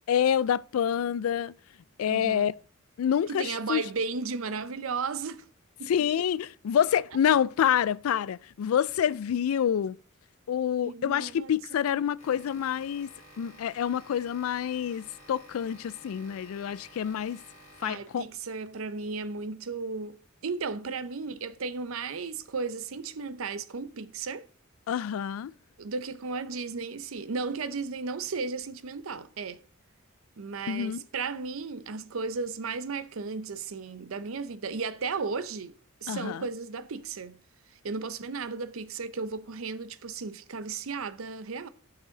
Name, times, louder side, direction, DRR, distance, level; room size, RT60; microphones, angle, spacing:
voice 1, 0.1-1.5 2.0-2.5 3.0-3.8 5.9-10.0 10.5-17.4 17.8-18.2 24.9-25.5 30.7-31.0 36.1-36.4, left 9 dB, 80° left, 0.3 m, -27 dB
voice 2, 2.1-2.5 3.3-5.5 5.8-5.9 10.8-11.5 11.8-12.0 17.8-24.5 25.8-29.6 30.4-35.7 36.0-37.4 37.8-41.7, right 4 dB, 75° right, 0.6 m, -35 dB
sound 1, 12.2-18.4, equal, 35° left, 2.2 m, -53 dB
10.5 x 6.1 x 3.9 m
head